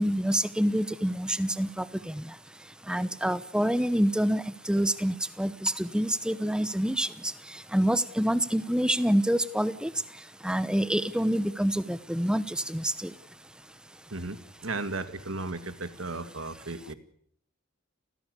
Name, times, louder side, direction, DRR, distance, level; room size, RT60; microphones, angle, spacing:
voice 1, 0.0-2.3 2.9-7.3 7.7-9.9 10.4-13.1, equal, 5° right, 15 dB, 0.9 m, -27 dB
voice 2, 14.1-16.9, right 2 dB, 70° right, 11 dB, 2.1 m, -35 dB
29.5 x 16.5 x 8.3 m, 0.65 s
head